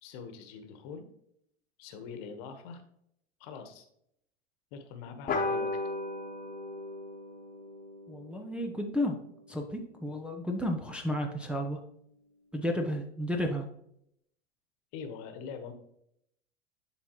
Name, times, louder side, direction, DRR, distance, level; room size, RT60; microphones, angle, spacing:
voice 1, 0.0-1.1 1.8-2.8 3.4-3.8 4.7-5.8 14.9-15.7, left 6 dB, 50° left, 7 dB, 1.3 m, -43 dB
sound 1, 5.3-10.2, left 2 dB, 25° left, 1.3 m, -37 dB
voice 2, 8.1-9.2 9.5-11.8 12.5-13.7, left 1 dB, 5° right, 1 dB, 0.7 m, -32 dB
11.0 x 3.9 x 3.0 m, 0.74 s
hypercardioid pair, 95°, 37 cm